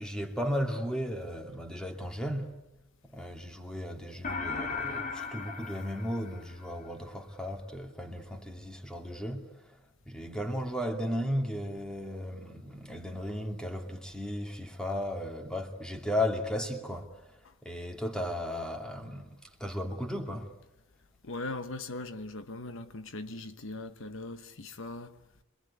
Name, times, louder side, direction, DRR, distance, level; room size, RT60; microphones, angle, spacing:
voice 1, 0.0-2.5 3.1-9.5 10.1-17.1 17.6-20.5, equal, 5° left, 2.5 m, -35 dB
sound 1, 4.2-6.9, left 4 dB, 40° left, 2.1 m, -37 dB
voice 2, 21.2-25.1, left 2 dB, 65° left, 1.1 m, -40 dB
25.5 x 22.0 x 9.9 m
head